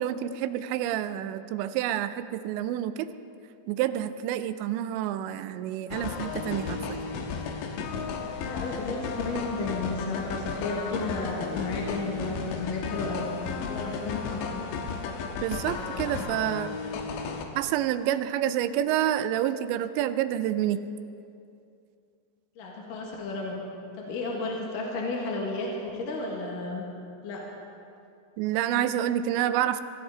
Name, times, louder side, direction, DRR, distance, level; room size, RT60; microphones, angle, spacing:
voice 1, 0.0-3.1 3.7-7.0 15.4-16.8 17.6-20.8 28.4-29.8, right 11 dB, 85° right, 12 dB, 2.9 m, -28 dB
sound 1, 5.9-17.5, left 5 dB, 90° left, 3.5 m, -34 dB
voice 2, 8.5-13.3 13.6-14.6 22.6-23.6 23.9-26.8 27.2-27.4, left 3 dB, 55° left, -2 dB, 3.0 m, -33 dB
24.5 x 14.5 x 3.9 m, 2.5 s
omnidirectional pair, 5.1 m